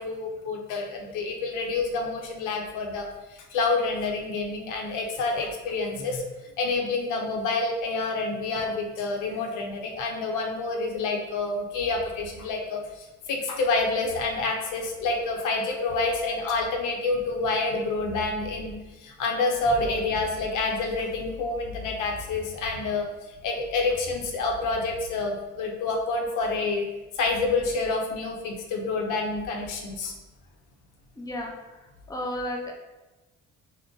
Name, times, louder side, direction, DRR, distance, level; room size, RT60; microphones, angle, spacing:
voice 1, 0.0-6.3 6.6-23.1 23.4-26.9 27.2-30.1, left 3 dB, 90° left, 1 dB, 0.6 m, -28 dB
voice 2, 31.2-31.5 32.1-32.7, left 1 dB, 10° left, 0 dB, 0.6 m, -32 dB
3.7 x 2.1 x 3.6 m, 1.1 s
cardioid pair, 90°, 30 cm